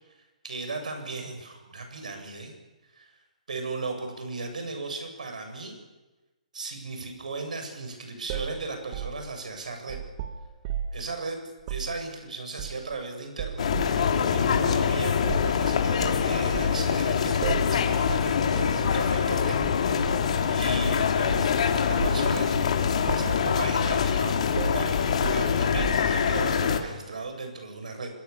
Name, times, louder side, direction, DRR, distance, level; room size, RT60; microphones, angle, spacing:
voice 1, 0.4-2.5 2.9-3.1 3.5-5.8 6.5-10.0 10.9-11.4 11.7-19.5 20.5-21.6 21.8-22.6 22.9-28.1, right 3 dB, 80° right, 5 dB, 7.4 m, -36 dB
sound 1, 8.3-11.1 11.6-11.9 12.6-13.0 13.4-14.0 14.5-14.7 15.3-15.6 16.0-16.8 17.4-17.8 18.1-18.3 18.6-18.8 19.6-20.2 20.8-21.6 22.0-22.3 22.6-22.8 23.1-23.5 23.9-24.2 24.6-26.2, right 9 dB, 35° right, 2.1 m, -35 dB
sound 2, 13.6-26.8, left 7 dB, 55° left, 3.6 m, -24 dB
25.5 x 23.5 x 7.1 m, 1.1 s
hypercardioid pair, 145°, 4 cm